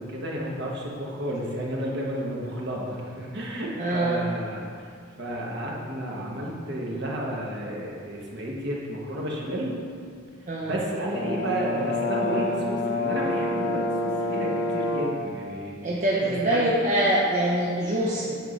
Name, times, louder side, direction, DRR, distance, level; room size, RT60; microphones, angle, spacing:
voice 1, 0.0-4.9 5.2-9.7 10.4-15.8 16.2-16.7, right 1 dB, 55° right, -3 dB, 1.3 m, -32 dB
voice 2, 3.8-4.3 10.4-10.8 15.8-18.4, right 1 dB, 35° right, -5 dB, 0.7 m, -24 dB
Brass instrument, 11.1-15.3, left 2 dB, 75° left, 1.1 m, -28 dB
9.3 x 3.6 x 5.3 m, 2.2 s
head